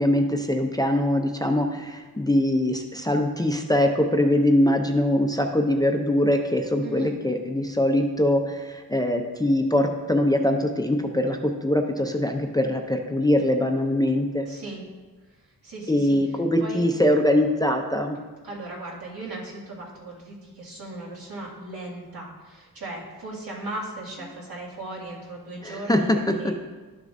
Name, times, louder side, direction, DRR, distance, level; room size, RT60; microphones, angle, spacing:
voice 1, 0.0-14.5 15.9-18.2 25.6-26.0, left 1 dB, 10° left, 3 dB, 0.4 m, -22 dB
voice 2, 6.8-7.2 14.5-14.8 15.6-16.2 16.6-16.9 18.4-26.1 26.4-26.6, right 2 dB, 80° right, -6 dB, 2.2 m, -37 dB
11.5 x 6.6 x 2.6 m, 1.3 s
wide cardioid pair, 150°, 36 cm